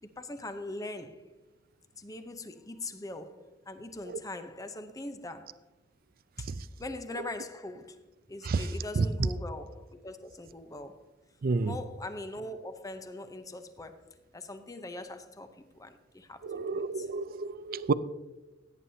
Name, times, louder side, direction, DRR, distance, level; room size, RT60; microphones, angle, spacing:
voice 1, 0.0-1.3 2.0-5.6 6.4-6.5 6.8-8.0 8.3-11.1 11.6-14.1 14.3-17.1, left 2 dB, 20° left, 0.7 m, -41 dB
voice 2, 11.4-11.8 16.4-17.9, right 4 dB, 50° right, 0.4 m, -29 dB
16.5 x 9.3 x 2.8 m
head